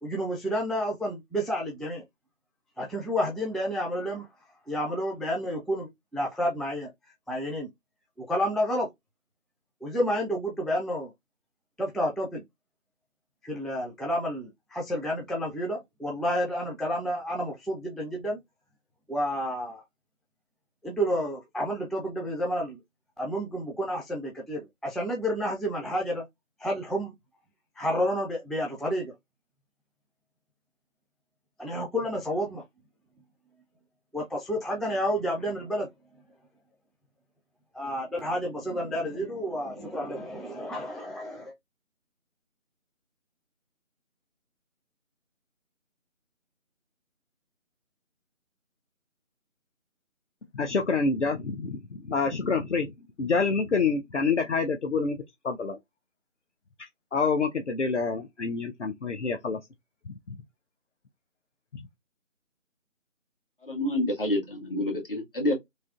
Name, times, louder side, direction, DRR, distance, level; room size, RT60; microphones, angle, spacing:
voice 1, 0.0-2.0 2.8-4.3 4.7-6.9 7.3-7.7 8.2-8.9 9.8-11.1 11.8-12.4 13.4-18.4 19.1-19.8 20.8-22.8 23.2-26.2 26.6-27.1 27.8-29.1 31.6-32.6 34.1-35.9 37.7-41.5, equal, ahead, 0.4 m, -30 dB
voice 2, 50.5-52.9 53.2-55.2 55.4-55.8 57.1-59.6, left 4 dB, 60° left, 0.5 m, -27 dB
voice 3, 63.6-65.5, left 1 dB, 40° left, 1.6 m, -28 dB
3.3 x 2.6 x 2.3 m
figure-of-eight pair, 170°, 40 cm